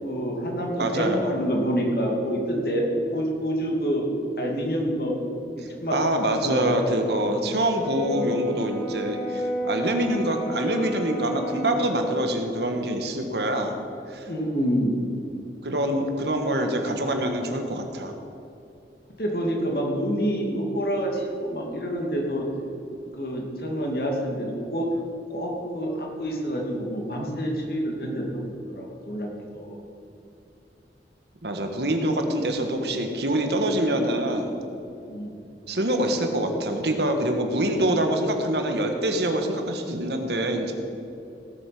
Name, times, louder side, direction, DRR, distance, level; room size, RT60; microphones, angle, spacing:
voice 1, 0.0-4.1 4.4-5.2 5.6-6.0 6.2-6.7 7.3-7.6 8.1-8.2 14.2-15.0 19.2-22.5 23.1-24.9 25.3-28.4 28.7-29.8 35.1-35.4, equal, 55° left, -1 dB, 2.6 m, -27 dB
voice 2, 0.8-1.3 5.9-13.7 14.1-14.3 15.6-18.1 31.4-34.6 35.7-40.7, right 1 dB, 75° right, 5 dB, 1.5 m, -25 dB
Brass instrument, 7.6-11.9, left 1 dB, 25° left, 3.7 m, -32 dB
17.5 x 8.1 x 6.0 m, 2.7 s
head